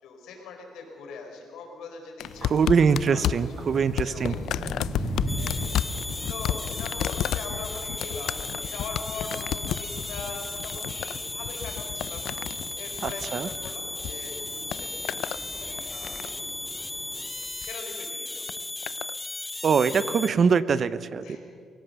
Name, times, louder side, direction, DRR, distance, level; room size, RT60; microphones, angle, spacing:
voice 1, 0.0-12.2 12.5-15.2 15.5-16.2 16.7-16.8 17.6-18.6 19.8-20.1 21.2-21.4, left 4 dB, 90° left, 2 dB, 4.7 m, -42 dB
sound 1, 2.2-14.1 14.4-15.4 15.8-16.5 17.4-17.7 18.5-19.1 20.0-20.1, left 11 dB, 75° left, 0.4 m, -32 dB
sound 2, 2.2-17.3, right 1 dB, 20° right, 4.6 m, -40 dB
voice 2, 2.4-4.4 13.0-13.5 19.6-21.2, right 6 dB, 40° right, 15 dB, 0.7 m, -23 dB
sound 3, 5.3-20.3, left 2 dB, 15° left, 0.9 m, -36 dB
23.0 x 17.0 x 6.8 m, 2.2 s
cardioid pair, 140°, 0 cm